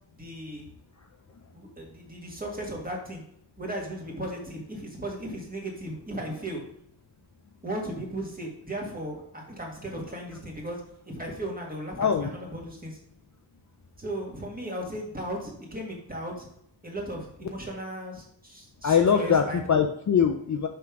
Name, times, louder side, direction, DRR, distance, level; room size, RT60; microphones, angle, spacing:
voice 1, 0.1-0.7 1.5-3.2 3.6-6.6 7.6-13.0 14.0-16.5 16.8-19.6, right 1 dB, 20° right, -1 dB, 1.8 m, -36 dB
voice 2, 12.0-12.3 18.8-20.7, left 7 dB, 40° left, 5 dB, 0.5 m, -22 dB
5.9 x 3.6 x 5.9 m, 0.71 s
wide cardioid pair, 160°, 48 cm